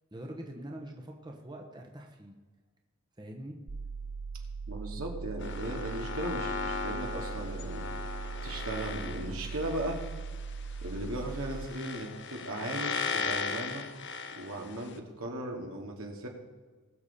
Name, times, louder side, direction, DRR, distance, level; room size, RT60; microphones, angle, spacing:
voice 1, 0.1-2.4 3.2-3.6, right 1 dB, 20° right, 1 dB, 1.1 m, -44 dB
sound 1, 3.7-11.7, right 5 dB, 45° right, 0.6 m, -40 dB
voice 2, 4.7-7.9 8.4-10.0 10.8-13.9 14.4-16.3, right 1 dB, 75° right, 1 dB, 2.4 m, -37 dB
sound 2, 5.4-15.0, left 5 dB, 55° left, 1.0 m, -38 dB
20.5 x 7.0 x 4.3 m, 1.4 s
head